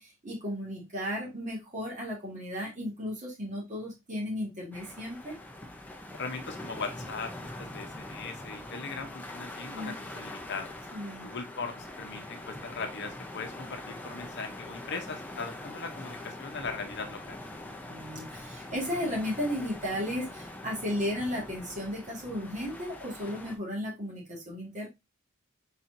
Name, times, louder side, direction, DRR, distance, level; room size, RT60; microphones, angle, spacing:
voice 1, 0.0-5.4 9.7-9.9 10.9-11.3 17.9-24.9, equal, 35° right, -2 dB, 1.9 m, -34 dB
sound 1, 4.7-23.6, left 1 dB, 10° left, 0.6 m, -43 dB
voice 2, 6.1-10.7 11.2-17.4, left 4 dB, 55° left, 5 dB, 0.8 m, -39 dB
4.3 x 4.1 x 2.6 m, 0.22 s
head